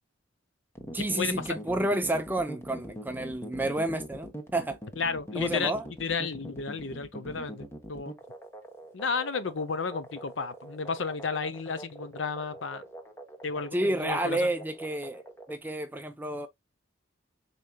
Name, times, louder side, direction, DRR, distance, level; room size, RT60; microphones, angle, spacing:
sound 1, 0.8-15.6, equal, 15° left, 0.9 m, -43 dB
voice 1, 0.9-4.8 5.3-5.8 13.7-15.2 15.5-16.5, right 1 dB, 10° right, 0.5 m, -30 dB
voice 2, 5.0-5.7 6.0-8.1 8.9-12.8 13.4-14.5, left 5 dB, 85° left, 0.7 m, -32 dB
5.0 x 4.2 x 2.2 m
head